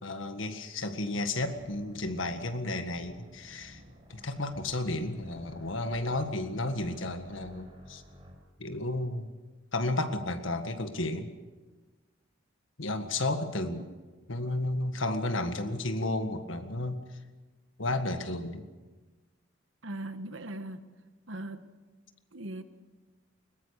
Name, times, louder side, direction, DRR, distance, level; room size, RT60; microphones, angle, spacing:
voice 1, 0.0-3.8 4.1-8.0 8.6-9.3 9.7-11.3 12.8-13.8 14.3-17.0 17.8-18.7, left 2 dB, 80° left, 8 dB, 1.7 m, -32 dB
sound 1, 1.3-8.3, equal, 30° right, 5.2 m, -53 dB
voice 2, 19.8-20.8 21.3-21.6 22.3-22.6, right 1 dB, 90° right, 9 dB, 1.4 m, -39 dB
21.5 x 19.5 x 6.6 m, 1.3 s
head